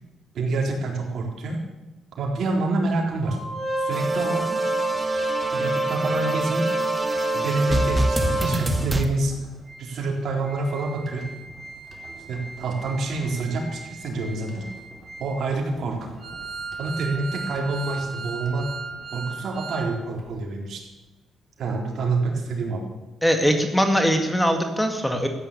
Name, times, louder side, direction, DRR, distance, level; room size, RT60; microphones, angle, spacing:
voice 1, 0.3-1.6 2.2-3.4 3.8-4.5 5.5-6.7 7.3-9.3 9.8-11.3 12.3-14.6 15.2-16.1 16.8-18.7 19.1-20.8 21.6-22.8, right 3 dB, 65° right, 0 dB, 4.0 m, -27 dB
Organ, 3.2-8.8 9.3-9.4 9.7-9.8 10.3-19.9 20.2-20.3, right 2 dB, 35° right, 4.2 m, -30 dB
sound 1, 3.9-9.1, right 1 dB, 15° right, 1.8 m, -27 dB
voice 2, 23.2-25.3, equal, 5° left, 5 dB, 1.9 m, -21 dB
14.0 x 9.7 x 8.6 m, 1.1 s
cardioid pair, 90°, 0 cm